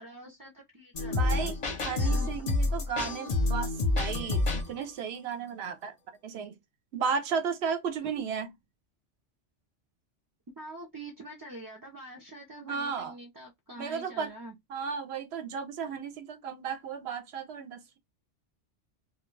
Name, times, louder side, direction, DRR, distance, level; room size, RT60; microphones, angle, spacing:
voice 1, 0.0-2.5 8.0-8.1 10.6-14.5, right 2 dB, 30° right, 0.3 m, -45 dB
sound 1, 0.9-4.8, left 2 dB, 40° left, 0.6 m, -28 dB
voice 2, 1.1-1.6 1.8-5.9 6.2-6.5 6.9-8.5 12.7-13.1 13.8-14.3 14.7-18.0, right 6 dB, 65° right, 0.8 m, -34 dB
2.2 x 2.2 x 3.1 m
omnidirectional pair, 1.2 m